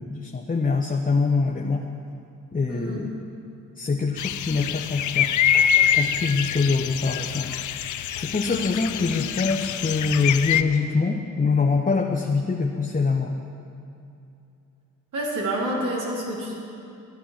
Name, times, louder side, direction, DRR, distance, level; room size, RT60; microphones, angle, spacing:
voice 1, 0.0-1.8 2.5-3.1 3.8-5.3 5.9-7.9 8.2-13.4, left 4 dB, 25° left, 1 dB, 1.1 m, -24 dB
voice 2, 2.7-3.0 8.5-8.7 15.1-16.6, right 1 dB, 60° right, -6 dB, 3.9 m, -28 dB
sound 1, 4.2-10.6, left 9 dB, 60° left, 0.6 m, -25 dB
14.5 x 9.7 x 6.0 m, 2.7 s
supercardioid pair, 55°, 35 cm